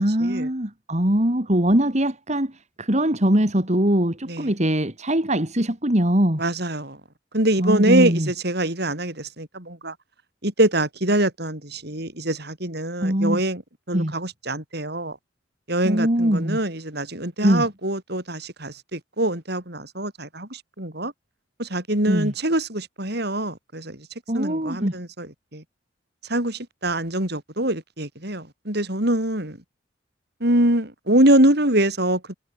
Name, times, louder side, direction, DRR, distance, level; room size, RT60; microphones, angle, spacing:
voice 1, 0.0-2.5 2.8-6.4 7.6-8.3 13.0-13.4 13.9-14.1 15.8-16.6 17.4-17.6 22.1-22.3 24.3-25.0, right 1 dB, 35° right, 3.2 m, -21 dB
voice 2, 6.4-7.0 7.3-9.9 10.4-13.6 13.9-15.2 15.7-21.1 21.6-24.1 24.3-25.6 26.3-29.6 30.4-32.3, right 1 dB, 60° right, 7.6 m, -24 dB
head